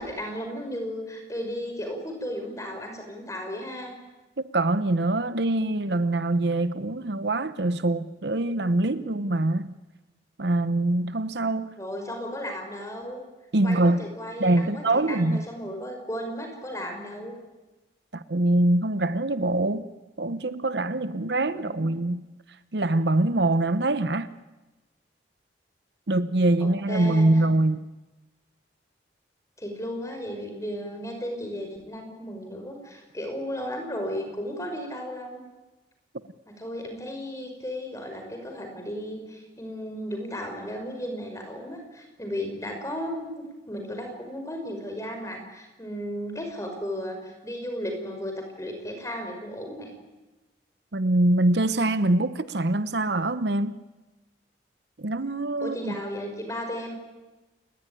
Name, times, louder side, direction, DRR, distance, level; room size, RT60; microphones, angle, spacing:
voice 1, 0.0-3.9 11.8-13.2 13.6-17.4 21.5-21.9 26.6-27.4 29.6-35.4 36.5-49.9 55.6-56.9, equal, 15° left, 5.7 m, -35 dB
voice 2, 4.5-9.7 10.4-11.7 13.5-14.0 14.4-15.4 18.1-19.9 20.2-22.3 22.7-24.3 26.1-27.8 50.9-53.7 55.0-56.0, right 2 dB, 65° right, 0.9 m, -24 dB
29.5 x 19.0 x 9.9 m
head